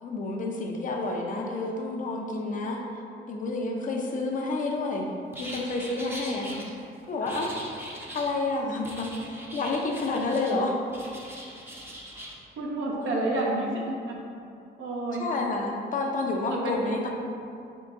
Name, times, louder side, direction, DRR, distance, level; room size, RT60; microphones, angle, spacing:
voice 1, 0.0-2.8 3.3-6.6 7.1-7.5 8.1-10.8 13.0-13.5 15.2-17.1, left 2 dB, 40° left, 0 dB, 0.5 m, -29 dB
sound 1, 5.3-6.6 7.3-8.3 8.8-10.6 10.9-12.3, equal, 10° right, 0.6 m, -41 dB
voice 2, 12.6-14.1 14.8-15.2 16.5-17.1, right 2 dB, 75° right, -2 dB, 0.7 m, -30 dB
3.7 x 2.2 x 3.6 m, 2.5 s
cardioid pair, 90°, 20 cm